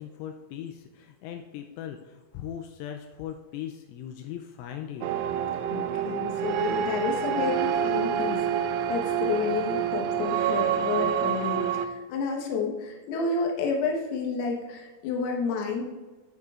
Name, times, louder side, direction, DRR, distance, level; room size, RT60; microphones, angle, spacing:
voice 1, 0.0-5.1, left 10 dB, 85° left, 4 dB, 3.0 m, -39 dB
sound 1, 5.0-11.9, right 9 dB, 90° right, 3.1 m, -27 dB
voice 2, 5.7-15.8, left 4 dB, 70° left, 0 dB, 2.9 m, -30 dB
16.0 x 6.5 x 2.4 m, 1.3 s
omnidirectional pair, 5.5 m